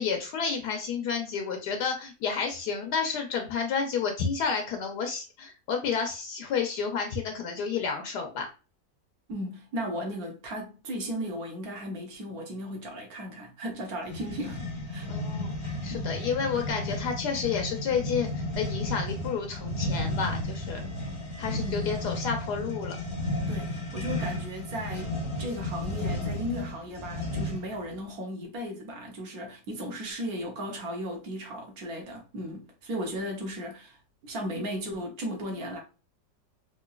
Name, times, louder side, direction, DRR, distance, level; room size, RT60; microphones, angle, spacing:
voice 1, 0.0-8.5 15.1-20.9 21.4-23.0, left 6 dB, 70° left, 1.1 m, -30 dB
voice 2, 9.3-15.1 15.9-16.2 21.5-21.9 23.5-34.0 34.2-35.8, equal, 60° right, 1.3 m, -36 dB
sound 1, 14.0-27.8, left 1 dB, 25° left, 0.7 m, -33 dB
3.8 x 2.8 x 2.3 m
omnidirectional pair, 1.9 m